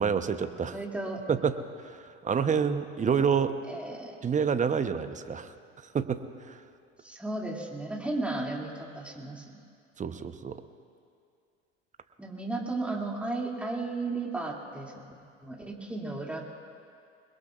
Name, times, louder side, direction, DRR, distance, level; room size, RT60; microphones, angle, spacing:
voice 1, 0.0-0.8 1.3-3.6 4.2-5.5 5.9-6.6 10.0-10.6, right 6 dB, 20° right, 10 dB, 0.8 m, -28 dB
voice 2, 0.7-1.2 3.7-4.2 7.0-9.4 12.2-14.9 15.4-16.5, right 2 dB, 5° right, -1 dB, 2.6 m, -34 dB
27.5 x 21.0 x 2.5 m, 2.3 s
hypercardioid pair, 75°, 38 cm